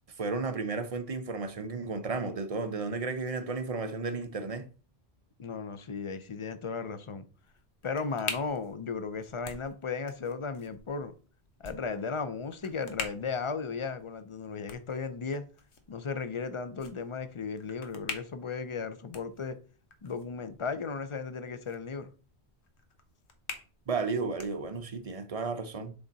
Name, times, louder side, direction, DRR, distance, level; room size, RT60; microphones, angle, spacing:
voice 1, 0.2-4.7 23.9-25.9, right 4 dB, 45° right, 0.5 m, -33 dB
voice 2, 5.4-7.2 7.8-11.1 11.6-15.4 15.9-19.6 20.0-22.1, left 5 dB, 40° left, 0.5 m, -35 dB
sound 1, 7.3-25.1, left 5 dB, 85° left, 1.2 m, -46 dB
7.0 x 3.7 x 4.0 m
omnidirectional pair, 1.1 m